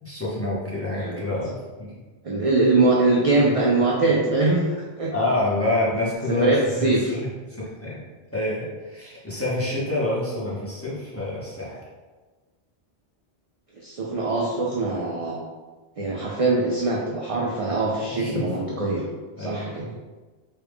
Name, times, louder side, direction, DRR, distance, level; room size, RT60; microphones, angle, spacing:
voice 1, 0.0-1.9 5.1-6.9 7.2-7.9 8.3-11.8 18.1-18.5 19.4-19.9, left 2 dB, 15° left, -8 dB, 0.7 m, -27 dB
voice 2, 0.9-1.2 2.2-5.1 6.3-7.2 13.8-15.4 16.0-19.0 19.4-19.9, right 2 dB, 55° right, -3 dB, 0.4 m, -22 dB
3.2 x 2.3 x 3.4 m, 1.3 s
omnidirectional pair, 1.0 m